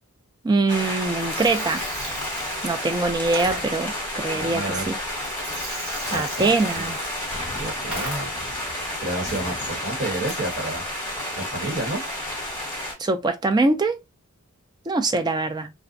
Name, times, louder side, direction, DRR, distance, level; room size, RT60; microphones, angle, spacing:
voice 1, 0.4-1.8 2.6-5.0 6.1-7.0 13.0-14.0 14.9-15.7, right 3 dB, 20° right, 0.3 m, -23 dB
sound 1, 0.7-12.9, left 1 dB, 10° left, 1.0 m, -31 dB
Gurgling, 1.1-8.6, right 1 dB, 65° right, 1.4 m, -38 dB
voice 2, 4.3-4.9 6.1-7.0 7.5-8.5 9.0-10.8 11.3-12.0, right 1 dB, 50° right, 1.2 m, -30 dB
sound 2, 6.0-11.0, left 3 dB, 25° left, 0.7 m, -42 dB
2.5 x 2.1 x 2.5 m
head